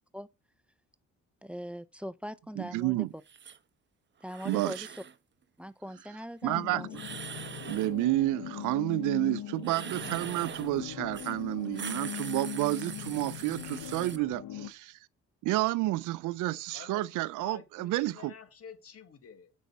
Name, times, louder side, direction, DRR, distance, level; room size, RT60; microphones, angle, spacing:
voice 1, 1.4-3.1 4.2-4.9 5.6-6.9, equal, 5° right, 0.6 m, -41 dB
voice 2, 2.6-3.1 4.4-4.9 6.4-6.8 7.7-15.0 15.4-18.3, right 18 dB, 90° right, 0.5 m, -30 dB
sound 1, 3.3-3.6 4.2-5.2 6.9-8.0 9.6-10.7 11.1-11.4 11.6-14.2, right 7 dB, 40° right, 0.9 m, -42 dB
sound 2, 6.4-14.7, left 12 dB, 70° left, 1.0 m, -40 dB
voice 3, 16.7-19.5, left 6 dB, 50° left, 2.0 m, -50 dB
8.1 x 5.6 x 6.0 m
cardioid pair, 90°, 30 cm